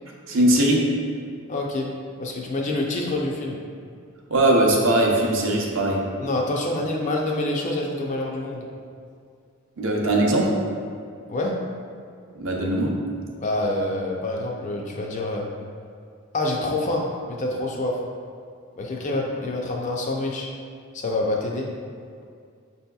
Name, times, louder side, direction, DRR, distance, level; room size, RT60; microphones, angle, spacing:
voice 1, 0.3-0.8 4.3-6.0 9.8-10.5 12.4-12.9, right 1 dB, 60° right, -1 dB, 0.6 m, -20 dB
voice 2, 1.5-1.9 2.2-3.6 6.2-8.6 11.3-11.6 13.4-15.5 16.3-18.0 18.8-20.5 20.9-21.7, left 2 dB, 35° left, 0 dB, 0.3 m, -26 dB
5.8 x 2.7 x 2.3 m, 2.2 s
head